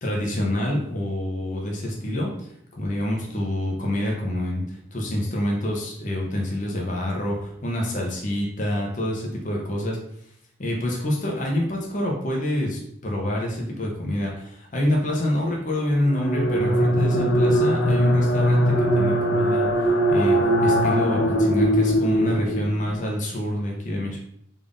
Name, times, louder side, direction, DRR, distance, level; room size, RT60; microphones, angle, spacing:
voice 1, 0.0-10.0 10.6-24.2, left 1 dB, 40° left, -1 dB, 0.7 m, -27 dB
sound 1, 16.1-23.0, equal, 80° left, 0.8 m, -21 dB
3.5 x 2.5 x 3.7 m, 0.70 s
head